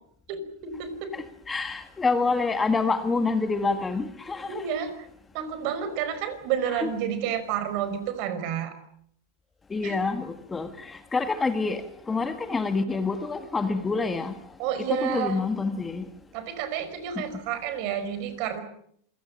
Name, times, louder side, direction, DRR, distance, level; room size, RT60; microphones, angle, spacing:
voice 1, 0.3-1.1 4.5-5.1 5.3-8.7 9.8-10.0 14.6-15.4 16.3-18.6, right 8 dB, 50° right, 5.2 m, -30 dB
voice 2, 1.1-4.7 6.8-6.9 9.7-14.4 15.0-16.0 17.1-17.3, left 4 dB, 10° left, 1.6 m, -27 dB
27.0 x 17.5 x 8.8 m
supercardioid pair, 140°, 0 cm